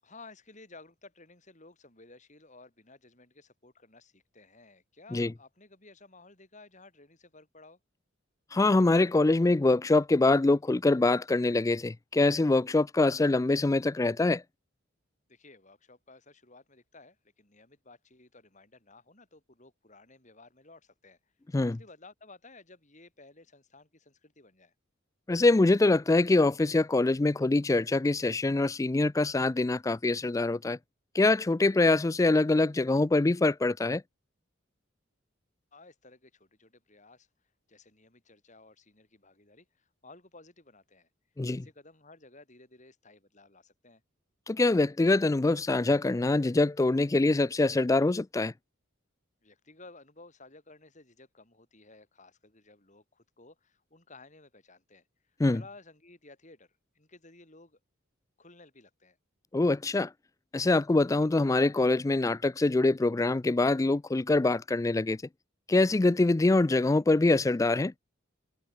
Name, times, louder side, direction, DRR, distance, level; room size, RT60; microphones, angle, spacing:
voice 1, 0.0-7.8 15.3-21.2 21.6-24.7 35.7-37.3 37.7-41.1 41.5-44.0 49.4-56.7 56.9-57.8 58.4-59.2, left 3 dB, 35° left, 6.3 m, -55 dB
voice 2, 8.5-14.4 21.5-21.8 25.3-30.8 31.1-34.0 41.4-41.6 44.5-48.5 55.4-55.6 59.5-60.1 60.5-65.2 65.7-67.9, left 2 dB, 15° left, 0.3 m, -24 dB
head